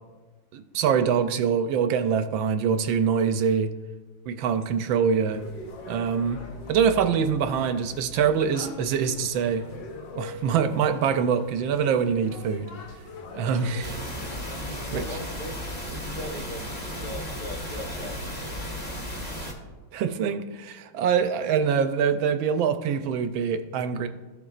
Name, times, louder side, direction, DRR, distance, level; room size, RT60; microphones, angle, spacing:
voice 1, 0.5-3.7 4.3-5.4 5.9-6.4 6.7-9.6 10.1-12.7 13.3-14.0 14.9-15.0 19.2-19.3 19.9-24.1, right 7 dB, 75° right, 9 dB, 1.3 m, -24 dB
sound 1, 5.3-15.1, left 2 dB, 65° left, 1.7 m, -42 dB
sound 2, 13.8-19.5, equal, 20° left, 1.4 m, -34 dB
voice 2, 14.6-15.6 15.9-18.2, left 1 dB, 45° left, -2 dB, 0.6 m, -38 dB
14.5 x 7.0 x 2.4 m, 1.2 s
omnidirectional pair, 2.2 m